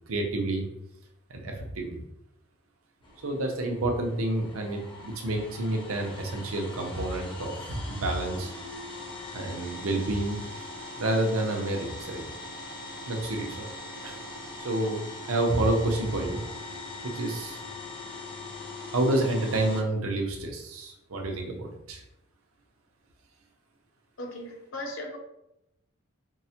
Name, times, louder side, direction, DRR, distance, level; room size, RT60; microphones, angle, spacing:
voice 1, 0.1-0.7 1.3-2.0 3.2-8.5 9.3-10.4 11.0-12.2 13.1-13.7 14.0-14.2 14.6-15.0 15.3-16.4 17.1-17.6 18.9-22.0, right 2 dB, 85° right, 2 dB, 0.6 m, -29 dB
sound 1, 3.0-19.8, left 2 dB, 25° left, 0.5 m, -41 dB
voice 2, 24.2-25.2, left 1 dB, 65° left, 2 dB, 0.6 m, -37 dB
4.5 x 2.1 x 2.8 m, 0.85 s
head